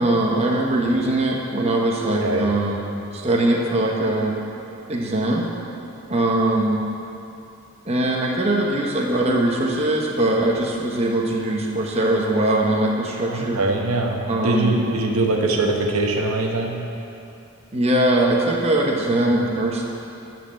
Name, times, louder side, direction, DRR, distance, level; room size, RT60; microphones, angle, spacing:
voice 1, 0.0-2.8 3.1-4.3 4.9-5.4 6.1-6.8 7.9-13.6 14.3-14.7 17.7-19.8, right 1 dB, 30° right, -2 dB, 0.9 m, -21 dB
voice 2, 13.3-16.8, right 2 dB, 85° right, 1 dB, 1.0 m, -22 dB
10.5 x 4.4 x 7.5 m, 2.7 s
head